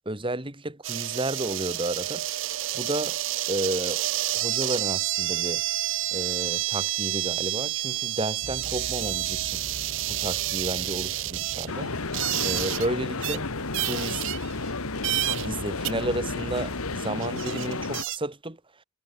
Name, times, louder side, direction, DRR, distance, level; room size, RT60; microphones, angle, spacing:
voice 1, 0.1-2.3 2.7-3.2 3.5-4.0 4.3-5.6 6.1-9.6 10.1-11.9 12.4-13.4 13.8-14.3 15.3-18.6, right 1 dB, 25° right, 2.1 m, -32 dB
sound 1, 0.8-12.9 13.2-13.4 13.7-14.7 15.0-15.5 15.8-15.9 16.9-17.0 17.2-18.2, right 15 dB, 60° right, 0.5 m, -29 dB
sound 2, 8.4-17.0, left 1 dB, 55° left, 4.2 m, -42 dB
sound 3, 11.7-18.0, left 3 dB, 80° left, 1.7 m, -32 dB
head